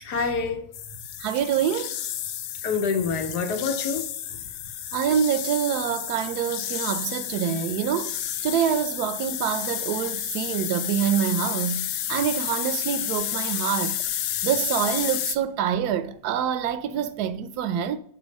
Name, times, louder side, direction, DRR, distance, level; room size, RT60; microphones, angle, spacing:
voice 1, 0.0-0.6 2.6-4.4, left 5 dB, 70° left, 1.5 m, -27 dB
sound 1, 0.7-15.4, left 11 dB, 90° left, 1.2 m, -31 dB
voice 2, 1.2-1.9 4.9-8.1 8.4-14.0 14.4-18.0, right 9 dB, 70° right, 1.2 m, -26 dB
6.2 x 4.1 x 6.3 m
omnidirectional pair, 1.8 m